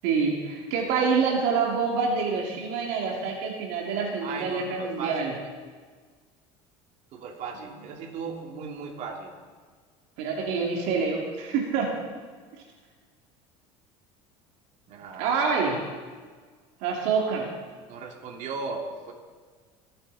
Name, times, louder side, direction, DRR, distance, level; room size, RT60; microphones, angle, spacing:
voice 1, 0.0-5.3 10.2-12.0 15.2-15.8 16.8-17.5, right 5 dB, 75° right, -1 dB, 2.5 m, -26 dB
voice 2, 4.2-5.5 7.1-9.3 14.9-15.4 17.9-19.1, right 4 dB, 55° right, 0 dB, 2.6 m, -37 dB
25.0 x 8.8 x 4.1 m, 1.5 s
supercardioid pair, 100°, 14 cm